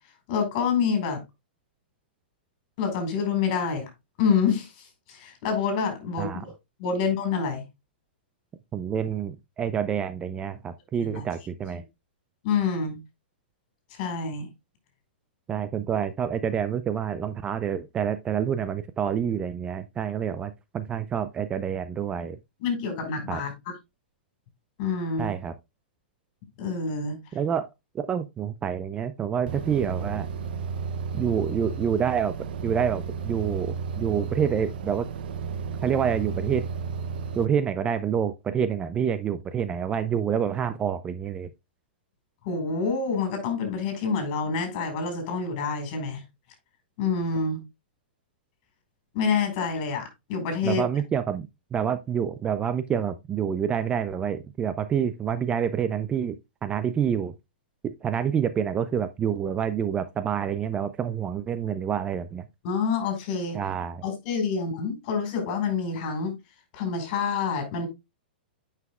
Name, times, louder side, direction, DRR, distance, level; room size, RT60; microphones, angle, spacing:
voice 1, 0.3-1.2 2.8-3.9 4.2-6.5 6.8-7.6 11.0-11.2 12.4-13.0 13.9-14.5 22.6-23.5 24.8-25.3 26.6-27.2 42.4-46.2 47.0-47.6 49.1-50.8 62.6-63.6 64.0-66.3 66.7-67.9, left 5 dB, 45° left, 4.7 m, -27 dB
voice 2, 8.7-11.8 15.5-22.4 23.3-23.4 25.2-25.5 27.3-27.7 27.9-30.3 31.1-32.4 32.6-35.1 35.8-36.6 37.4-41.5 50.6-56.4 56.6-57.3 57.8-62.4 63.5-64.0, right 8 dB, 20° right, 0.4 m, -27 dB
sound 1, 29.5-37.5, right 5 dB, 65° right, 0.6 m, -33 dB
9.3 x 5.7 x 2.3 m
hypercardioid pair, 135°, 6 cm